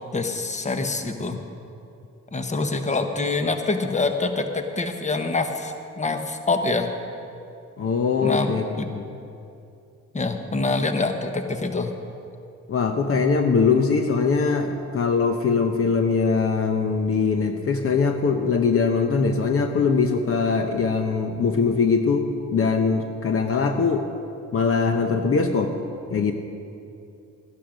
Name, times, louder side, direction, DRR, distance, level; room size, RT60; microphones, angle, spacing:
voice 1, 0.1-1.4 2.3-6.9 8.2-8.9 10.1-11.9, left 3 dB, 25° left, 6 dB, 1.1 m, -25 dB
voice 2, 7.8-8.6 8.9-9.0 12.7-24.1 24.5-25.7 26.1-26.3, left 5 dB, 50° left, 5 dB, 0.9 m, -22 dB
13.0 x 11.5 x 5.2 m, 2.7 s
cardioid pair, 90°, 30 cm